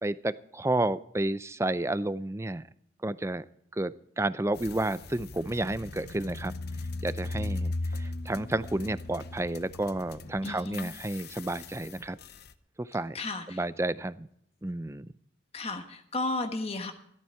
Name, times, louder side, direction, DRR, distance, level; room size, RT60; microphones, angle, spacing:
voice 1, 0.0-2.6 3.0-3.4 3.7-6.5 7.0-12.2 12.8-13.2 13.5-14.3 14.6-15.1, right 2 dB, 15° right, 15 dB, 0.5 m, -31 dB
sound 1, 4.5-12.5, left 2 dB, 55° left, 0.7 m, -38 dB
voice 2, 10.4-10.9 13.1-13.6 15.5-16.9, left 2 dB, 30° left, 6 dB, 1.2 m, -33 dB
14.0 x 13.0 x 4.5 m, 0.70 s
head